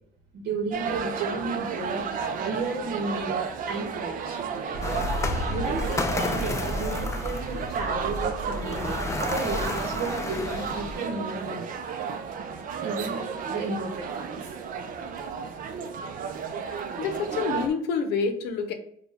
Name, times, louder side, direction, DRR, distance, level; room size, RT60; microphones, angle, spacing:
voice 1, 0.3-2.0 2.3-4.5 5.5-6.4 6.8-8.9 9.3-11.7 12.8-13.2 13.5-14.5, right 3 dB, 70° right, 1 dB, 0.9 m, -33 dB
sound 1, 0.7-17.7, right 6 dB, 55° right, 0.5 m, -32 dB
sound 2, 4.7-10.9, equal, 40° left, 1.0 m, -35 dB
sound 3, 4.8-11.1, left 3 dB, 15° left, 0.4 m, -33 dB
voice 2, 16.6-18.7, left 5 dB, 90° left, 7 dB, 0.6 m, -28 dB
4.3 x 2.3 x 3.5 m, 0.66 s
cardioid pair, 110°, 17 cm